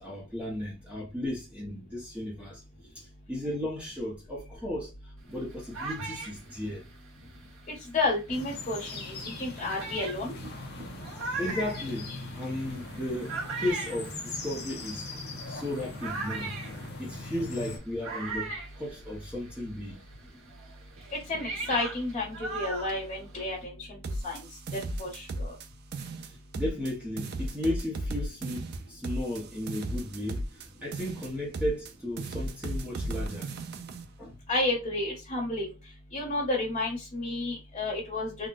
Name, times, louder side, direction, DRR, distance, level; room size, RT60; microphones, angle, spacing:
voice 1, 0.0-2.6 2.9-6.9 11.3-15.1 15.5-16.6 17.0-20.0 26.2-33.5 34.2-34.4, left 1 dB, 5° right, 0.8 m, -35 dB
sound 1, 5.3-8.3 9.0-9.1 9.6-19.6 19.9-23.6, right 3 dB, 80° right, 1.0 m, -40 dB
voice 2, 7.7-10.3 21.1-24.0 24.2-24.5 25.0-25.5 34.5-35.7 36.1-38.5, left 2 dB, 35° left, 1.4 m, -31 dB
sound 2, 8.3-17.8, left 2 dB, 50° left, 0.8 m, -40 dB
sound 3, 24.0-25.7 25.9-26.9 27.2-30.7 30.9-31.9 32.2-34.0, right 1 dB, 50° right, 0.4 m, -35 dB
3.8 x 2.3 x 2.3 m
head